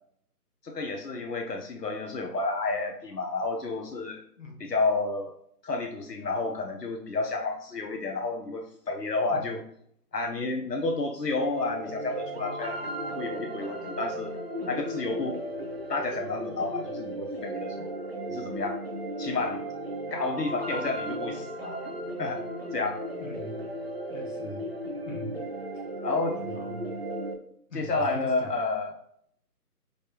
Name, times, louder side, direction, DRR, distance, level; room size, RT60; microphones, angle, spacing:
voice 1, 0.6-4.2 4.6-5.3 5.6-9.6 10.1-12.8 13.1-14.3 14.7-15.4 15.9-17.9 18.3-18.8 19.2-19.6 20.1-21.8 22.2-22.5 22.7-23.0 26.0-26.4 27.7-28.9, left 3 dB, 85° left, 2 dB, 0.9 m, -30 dB
voice 2, 4.4-4.7 9.3-9.6 23.2-23.6 24.1-24.7 25.1-25.4 26.4-27.0 27.7-28.5, equal, 50° left, 0 dB, 1.3 m, -41 dB
sound 1, 11.3-27.3, right 1 dB, 40° right, 0.6 m, -35 dB
5.2 x 3.3 x 2.4 m, 0.66 s
figure-of-eight pair, 160°, 47 cm